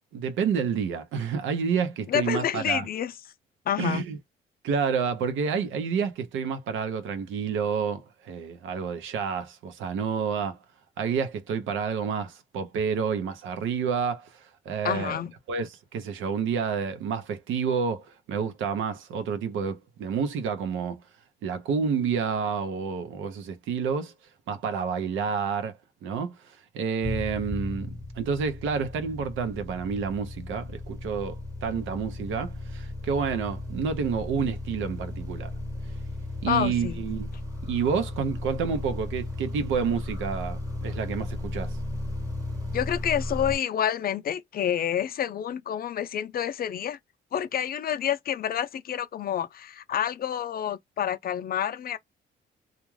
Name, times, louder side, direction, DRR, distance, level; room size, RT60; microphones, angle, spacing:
voice 1, 0.1-2.9 3.8-4.2 4.6-10.6 11.0-14.3 14.7-15.2 15.5-21.0 21.4-24.1 24.5-25.7 26.0-26.3 26.7-35.5 36.4-37.3 37.7-41.8, right 6 dB, 80° right, 0.7 m, -29 dB
voice 2, 2.1-3.1 3.7-4.0 14.8-15.3 36.5-37.0 42.7-47.0 47.3-52.0, left 9 dB, 50° left, 0.4 m, -28 dB
sound 1, 27.0-43.6, left 2 dB, 15° right, 1.1 m, -35 dB
2.4 x 2.2 x 3.1 m
cardioid pair, 90°, 20 cm